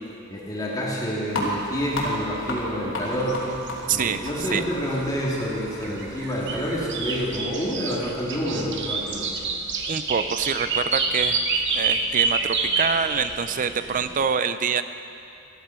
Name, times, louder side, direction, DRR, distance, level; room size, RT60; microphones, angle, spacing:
voice 1, 0.3-3.4 3.9-9.3, equal, 20° left, -5 dB, 2.0 m, -28 dB
sound 1, 1.3-7.4, left 1 dB, 65° left, 2.7 m, -34 dB
sound 2, 3.1-14.3, right 4 dB, 60° right, 1.0 m, -28 dB
voice 2, 3.9-4.6 9.9-14.8, right 6 dB, 40° right, 12 dB, 0.5 m, -26 dB
14.0 x 13.5 x 4.4 m, 2.7 s
head